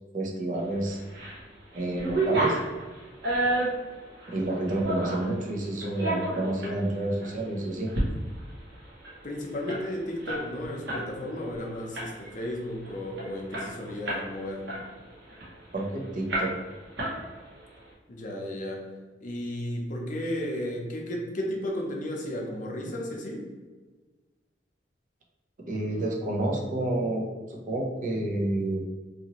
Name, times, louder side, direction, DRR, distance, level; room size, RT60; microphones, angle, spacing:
voice 1, 0.1-1.0 1.7-2.6 4.3-7.9 15.7-16.5 25.6-27.2 27.7-28.8, right 1 dB, 45° right, 1 dB, 0.5 m, -29 dB
sound 1, 0.9-1.4 1.7-5.3 5.8-6.8 7.2-7.4 7.8-8.1 8.4-8.5 8.7-11.1 11.4-11.6 11.9-12.4 12.8-12.9 13.2-14.3 14.7-15.8 16.3-16.7 17.0-17.6, right 2 dB, 75° right, 0.9 m, -30 dB
voice 2, 9.2-14.7 18.1-18.9 19.2-23.5, left 1 dB, 45° left, 0 dB, 0.6 m, -34 dB
2.7 x 2.5 x 2.9 m, 1.3 s
head